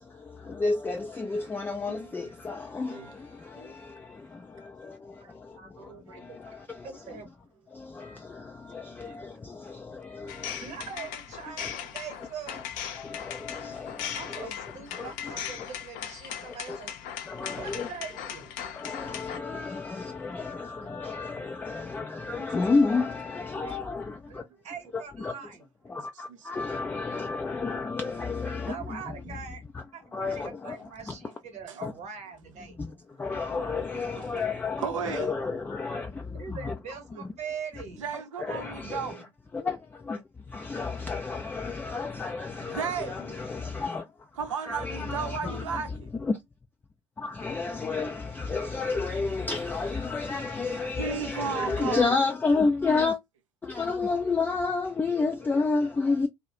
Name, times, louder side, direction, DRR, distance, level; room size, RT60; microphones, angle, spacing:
voice 1, 0.6-3.0 8.0-8.1 8.7-9.3 10.1-10.3 13.1-14.0 14.4-14.5 15.0-15.1 16.7-16.8 17.3-17.9 18.8-24.1 24.9-25.3 25.9-28.8 30.1-30.8 31.8-31.9 33.2-34.8 35.1-36.1 36.6-36.7 38.5-39.0 39.5-39.8 40.1-40.2 40.5-44.0 44.7-45.6 46.2-46.4 47.2-53.2 53.6-56.3, left 4 dB, 10° left, 0.3 m, -30 dB
voice 2, 1.9-2.2 2.9-3.2 3.4-3.8 5.8-6.3 15.3-15.4 17.5-17.6 18.6-19.9 20.2-20.3 20.7-20.9 22.4-22.8 23.6-23.7 26.3-26.6 27.7-27.8 29.2-29.3 30.4-31.1 31.7-31.8 33.2-34.5 34.8-35.4 37.9-39.3 42.6-43.5 44.3-46.1 51.0-52.2, right 6 dB, 85° right, 0.5 m, -37 dB
voice 3, 5.2-5.7 6.3-6.4 6.8-7.3 9.0-9.1 10.2-12.8 14.1-16.9 17.6-18.5 24.3-25.6 28.6-29.6 29.9-32.8 36.3-38.0, right 6 dB, 45° right, 0.9 m, -42 dB
sound 1, 10.3-19.4, left 9 dB, 60° left, 0.6 m, -38 dB
2.3 x 2.0 x 2.7 m
hypercardioid pair, 70°, 16 cm